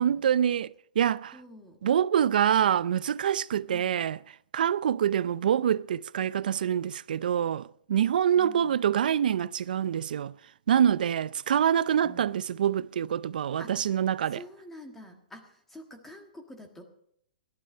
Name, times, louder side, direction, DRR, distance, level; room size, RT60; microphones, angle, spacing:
voice 1, 0.0-1.4 1.8-4.2 4.5-10.4 10.7-14.4, right 9 dB, 75° right, 0.4 m, -26 dB
voice 2, 1.3-1.8 3.7-4.0 8.3-8.8 12.0-12.3 13.6-14.0 14.3-16.8, equal, 5° left, 1.5 m, -47 dB
16.5 x 11.5 x 5.5 m
hypercardioid pair, 155°, 5 cm